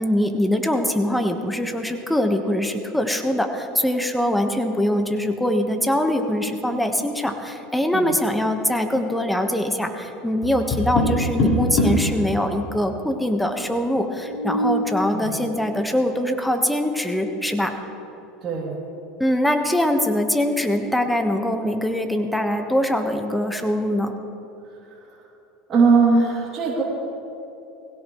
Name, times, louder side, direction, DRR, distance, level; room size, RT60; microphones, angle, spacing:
voice 1, 0.0-17.7 19.2-24.1, left 1 dB, 5° left, 5 dB, 1.2 m, -23 dB
Tap, 10.4-12.1 14.1-14.9, equal, 50° left, 4.3 m, -22 dB
voice 2, 18.4-18.8 24.8-25.2 25.7-26.8, right 4 dB, 35° right, -5 dB, 2.7 m, -20 dB
20.5 x 17.0 x 3.1 m, 3.0 s
supercardioid pair, 120°, 0 cm